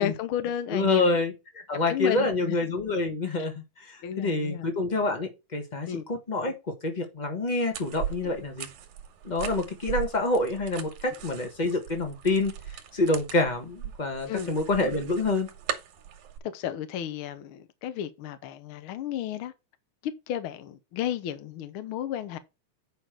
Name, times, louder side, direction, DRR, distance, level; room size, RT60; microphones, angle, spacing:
voice 1, 0.0-1.2 1.9-2.6 4.0-4.7 5.9-6.0 14.3-14.5 16.5-19.5 20.0-22.4, left 10 dB, 70° left, 1.2 m, -32 dB
voice 2, 0.7-6.5 6.8-8.7 9.2-15.5, left 2 dB, 50° left, 0.5 m, -27 dB
sound 1, 7.7-16.4, right 9 dB, 80° right, 2.6 m, -39 dB
8.9 x 5.1 x 4.5 m
omnidirectional pair, 3.4 m